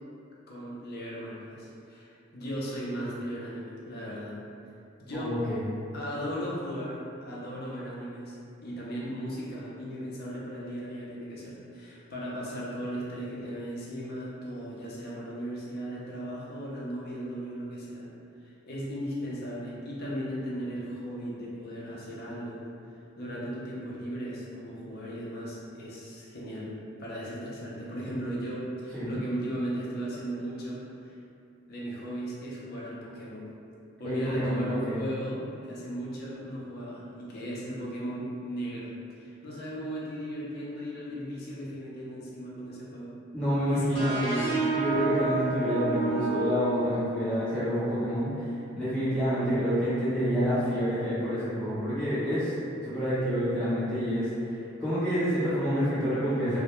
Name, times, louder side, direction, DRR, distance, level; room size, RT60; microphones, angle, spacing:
voice 1, 0.5-4.4 5.0-5.3 5.9-18.1 18.4-22.6 22.9-31.2 31.7-33.5 34.0-43.1 43.7-44.6, equal, 50° left, -6 dB, 0.5 m, -36 dB
voice 2, 5.1-5.6 28.9-29.2 34.0-35.0 43.3-44.3 44.7-52.5 52.8-56.6, equal, 5° left, -15 dB, 0.8 m, -28 dB
sound 1, 43.9-47.5, right 3 dB, 30° left, 1.2 m, -30 dB
2.2 x 2.1 x 2.9 m, 2.6 s
head